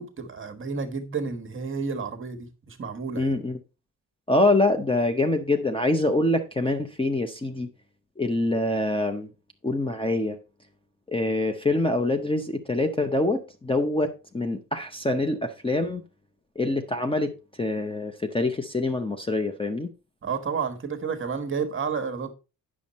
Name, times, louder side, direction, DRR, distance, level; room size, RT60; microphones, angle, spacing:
voice 1, 0.0-3.3 20.2-22.3, right 5 dB, 35° right, 1.2 m, -31 dB
voice 2, 3.2-3.6 4.3-7.7 8.2-9.3 9.6-10.4 11.1-16.0 16.6-17.3 17.6-19.9, left 2 dB, 15° left, 0.6 m, -25 dB
9.1 x 6.3 x 4.1 m
wide cardioid pair, 160°, 35 cm